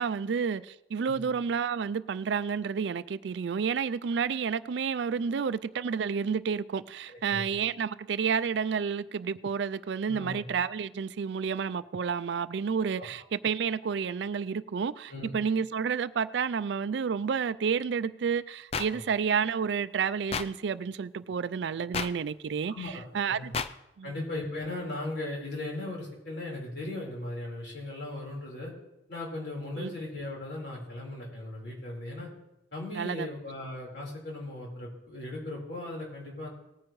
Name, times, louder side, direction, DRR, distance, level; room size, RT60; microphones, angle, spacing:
voice 1, 0.0-23.5 24.0-24.1 29.8-29.9 32.9-33.3, right 6 dB, 65° right, 0.4 m, -30 dB
voice 2, 7.1-7.5 10.1-10.4 15.1-15.3 18.9-19.0 22.7-23.5 24.0-28.7 29.1-32.3 32.7-36.5, left 2 dB, 60° left, 4.3 m, -38 dB
sound 1, 18.7-18.9 20.3-20.5 21.9-22.1 23.5-23.7, left 5 dB, 30° left, 0.4 m, -30 dB
19.0 x 9.7 x 3.1 m
head